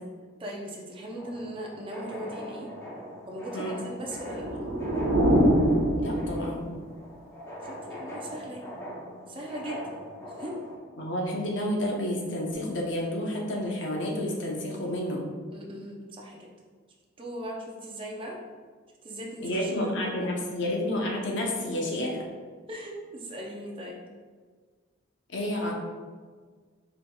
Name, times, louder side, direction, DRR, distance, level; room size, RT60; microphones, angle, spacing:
voice 1, 0.4-2.7 3.3-4.5 7.6-8.6 9.3-9.8 10.3-10.6 15.5-16.5 17.2-18.4 19.0-20.3 22.7-24.0, right 1 dB, 25° right, -1 dB, 0.6 m, -38 dB
sound 1, 1.2-10.8, equal, 15° left, 0.7 m, -42 dB
sound 2, 4.1-6.8, equal, 85° right, 0.9 m, -24 dB
voice 2, 6.0-6.6 11.0-15.2 19.4-22.3 25.3-25.7, left 1 dB, 60° left, -1 dB, 0.8 m, -30 dB
5.0 x 4.0 x 2.3 m, 1.5 s
head